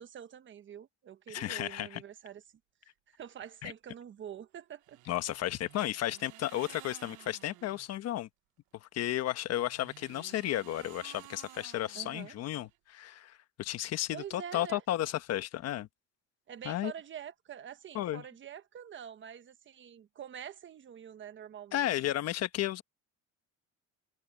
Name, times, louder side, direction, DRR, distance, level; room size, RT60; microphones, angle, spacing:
voice 1, 0.0-2.4 2.8-5.0 11.9-12.3 14.1-14.8 16.5-21.9, right 9 dB, 40° right, 1.2 m, -46 dB
voice 2, 1.3-2.0 3.6-3.7 5.1-8.3 8.8-15.9 16.6-16.9 17.9-18.2 21.7-22.8, left 13 dB, 55° left, 1.3 m, -33 dB
sound 1, 4.8-8.0 9.4-12.8, right 17 dB, 85° right, 1.4 m, -54 dB
cardioid pair, 135°, 30 cm